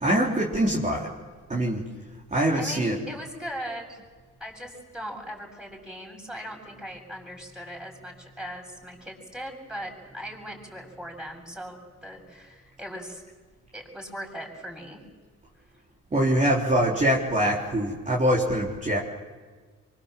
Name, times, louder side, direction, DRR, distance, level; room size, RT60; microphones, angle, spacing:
voice 1, 0.0-1.1 1.5-1.8 2.3-3.0 16.1-19.0, right 1 dB, 25° right, -4 dB, 3.9 m, -23 dB
voice 2, 2.3-4.0 4.4-13.2 13.7-15.0, equal, ahead, 1 dB, 7.6 m, -39 dB
25.0 x 24.5 x 7.6 m, 1.5 s
cardioid pair, 90°, 30 cm